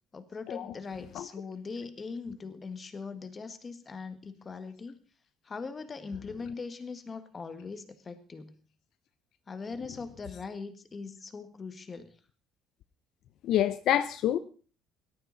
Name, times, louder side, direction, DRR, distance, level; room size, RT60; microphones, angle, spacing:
voice 1, 0.1-5.0 5.5-8.5 9.5-12.1, left 4 dB, 25° left, 1.7 m, -41 dB
voice 2, 13.4-14.4, left 11 dB, 60° left, 0.7 m, -27 dB
17.5 x 13.0 x 4.1 m
cardioid pair, 145°, 0 cm